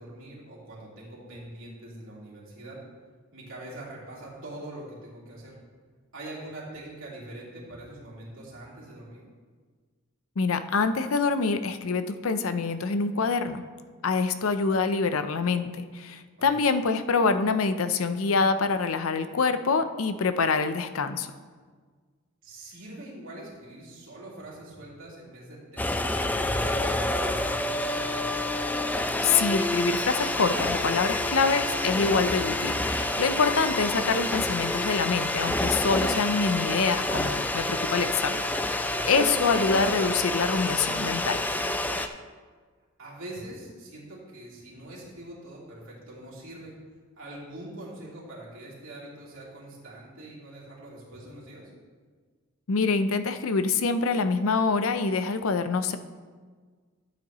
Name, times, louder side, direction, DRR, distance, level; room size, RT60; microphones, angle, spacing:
voice 1, 0.0-2.8 3.3-5.5 6.1-9.2 16.5-16.6 22.4-28.4 38.9-39.2 43.0-46.7 47.2-51.7, right 1 dB, 65° right, -6 dB, 3.3 m, -43 dB
voice 2, 10.4-13.6 14.0-21.3 29.2-38.4 38.7-41.4 52.7-56.0, left 4 dB, 80° left, 10 dB, 0.6 m, -25 dB
sound 1, 25.8-42.1, left 1 dB, 10° left, 0.3 m, -28 dB
12.5 x 8.9 x 3.0 m, 1.5 s
head